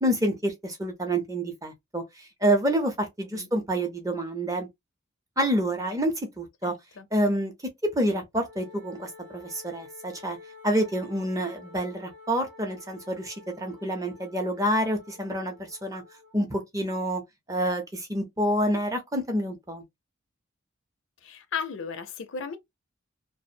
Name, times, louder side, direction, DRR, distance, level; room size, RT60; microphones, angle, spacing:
voice 1, 0.0-4.7 5.4-6.7 7.1-7.5 7.8-10.4 10.6-16.0 16.3-17.2 17.5-19.8, right 1 dB, 15° right, 0.6 m, -28 dB
voice 2, 6.6-7.1 21.2-22.6, left 6 dB, 75° left, 0.5 m, -35 dB
Wind instrument woodwind instrument, 8.4-16.4, left 3 dB, 55° right, 0.6 m, -50 dB
2.4 x 2.0 x 2.6 m
head